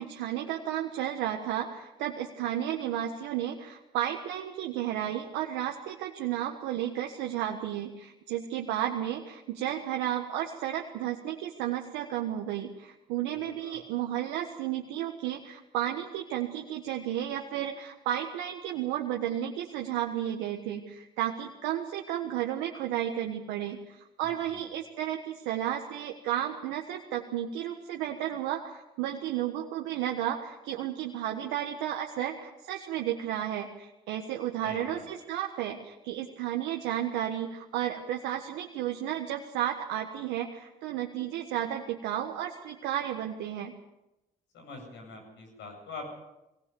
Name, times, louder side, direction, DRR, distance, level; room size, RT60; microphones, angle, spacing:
voice 1, 0.0-43.7, right 11 dB, 85° right, 2 dB, 1.5 m, -33 dB
voice 2, 13.5-13.8 24.4-24.6 34.6-35.0 44.5-46.1, left 3 dB, 80° left, 3 dB, 8.0 m, -44 dB
22.0 x 18.5 x 7.1 m, 0.95 s
supercardioid pair, 55°, 19 cm